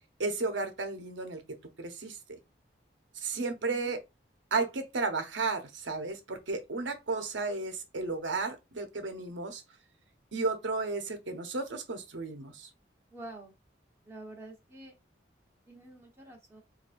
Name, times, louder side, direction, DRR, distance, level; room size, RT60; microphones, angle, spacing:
voice 1, 0.2-1.4 1.8-2.2 3.2-4.0 4.5-9.6 10.3-12.7, right 3 dB, 80° right, 0.8 m, -33 dB
voice 2, 3.3-3.9 13.1-13.5 14.0-14.9 15.7-16.6, right 2 dB, 15° right, 1.0 m, -48 dB
4.5 x 2.6 x 2.5 m
head